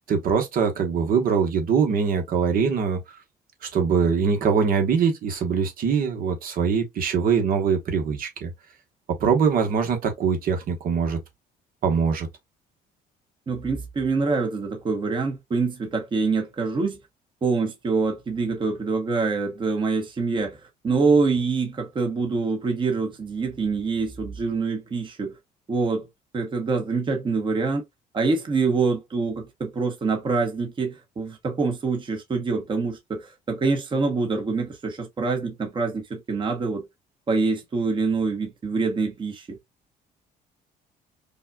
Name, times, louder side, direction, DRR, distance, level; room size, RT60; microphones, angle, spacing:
voice 1, 0.1-3.2 3.7-8.5 9.2-11.2 11.8-12.3, right 6 dB, 60° right, 1.2 m, -23 dB
voice 2, 13.5-17.0 17.4-25.4 25.7-26.1 26.3-27.8 28.1-36.8 37.3-39.6, right 4 dB, 30° right, 1.0 m, -25 dB
5.3 x 2.3 x 2.3 m
cardioid pair, 110°, 17 cm